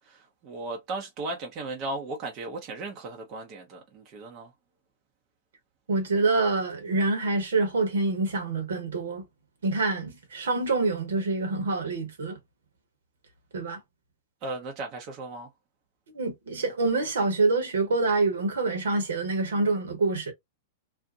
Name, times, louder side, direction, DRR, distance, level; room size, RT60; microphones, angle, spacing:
voice 1, 0.1-4.5 14.4-15.5, right 2 dB, 35° right, 0.7 m, -36 dB
voice 2, 5.9-9.2 9.6-12.4 13.5-13.8 16.1-20.3, right 3 dB, 70° right, 1.0 m, -26 dB
2.6 x 2.1 x 2.6 m
figure-of-eight pair, 100°, 0 cm